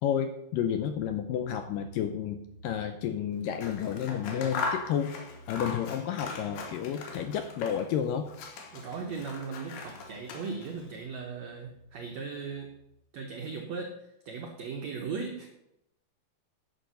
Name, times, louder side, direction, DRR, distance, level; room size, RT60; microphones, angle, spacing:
voice 1, 0.0-5.2 5.5-8.3, left 9 dB, 85° left, 7 dB, 2.0 m, -31 dB
sound 1, 1.0-12.9, right 1 dB, 25° left, 4.3 m, -55 dB
Scissors, 3.5-8.0 8.3-10.8, left 4 dB, 65° left, 2.5 m, -39 dB
voice 2, 8.7-12.7 13.1-14.0 14.2-15.5, right 5 dB, 85° right, 3 dB, 1.5 m, -38 dB
11.0 x 6.6 x 5.6 m, 0.83 s
omnidirectional pair, 4.5 m